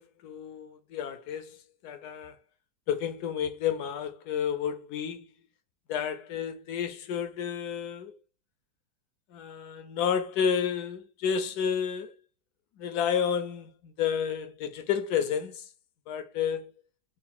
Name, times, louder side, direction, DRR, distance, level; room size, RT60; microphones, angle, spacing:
voice 1, 0.0-2.4 2.9-5.3 5.9-8.1 9.3-12.1 12.8-15.7 16.1-16.7, left 8 dB, 70° left, 1.0 m, -31 dB
3.8 x 2.1 x 4.2 m
omnidirectional pair, 1.9 m